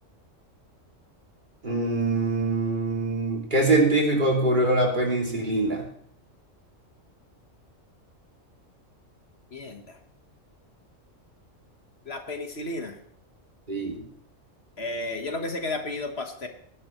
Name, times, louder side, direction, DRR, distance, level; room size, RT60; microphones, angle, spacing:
voice 1, 1.6-5.8 13.7-14.0, right 2 dB, 40° right, -1 dB, 2.7 m, -23 dB
voice 2, 9.5-10.0 12.0-13.0 14.8-16.5, left 2 dB, 55° left, 5 dB, 1.5 m, -33 dB
18.0 x 10.5 x 3.1 m, 0.65 s
omnidirectional pair, 1.3 m